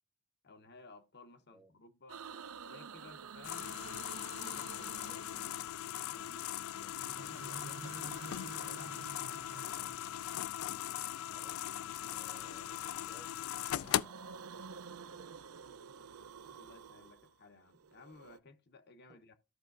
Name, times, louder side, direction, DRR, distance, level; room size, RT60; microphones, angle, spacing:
voice 1, 0.4-2.2 2.7-3.7 4.3-5.5 5.9-10.0 12.0-12.2 16.5-19.3, left 3 dB, 45° left, 0.8 m, -57 dB
sound 1, 2.1-6.0 6.8-10.5 11.9-13.0 13.4-18.4, right 5 dB, 75° right, 0.6 m, -50 dB
sound 2, 3.4-14.0, left 12 dB, 70° left, 0.3 m, -39 dB
voice 2, 5.1-5.4 11.3-11.6 12.0-15.4 19.1-19.2, right 1 dB, ahead, 0.7 m, -63 dB
14.5 x 5.5 x 2.5 m
head